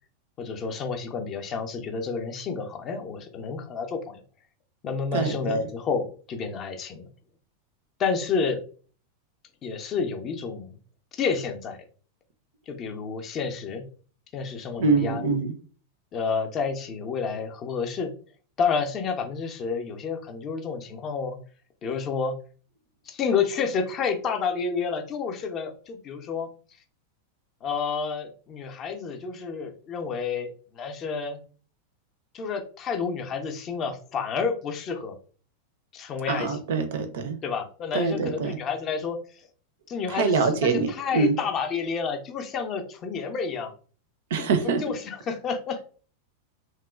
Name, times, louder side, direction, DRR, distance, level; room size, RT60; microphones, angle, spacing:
voice 1, 0.4-4.2 4.8-7.1 8.0-8.6 9.6-10.7 11.1-11.8 12.7-13.8 14.3-15.3 16.1-18.1 18.6-21.4 21.8-22.3 23.1-26.5 27.6-31.4 32.3-35.2 35.9-36.6 37.4-39.2 39.9-43.7 44.8-45.8, left 5 dB, 30° left, 5 dB, 0.4 m, -30 dB
voice 2, 5.1-5.6 14.8-15.5 36.3-37.4 37.9-38.6 40.1-41.4 44.3-44.8, right 4 dB, 55° right, 8 dB, 0.4 m, -24 dB
2.9 x 2.1 x 2.3 m, 0.40 s
figure-of-eight pair, 90°, 0 cm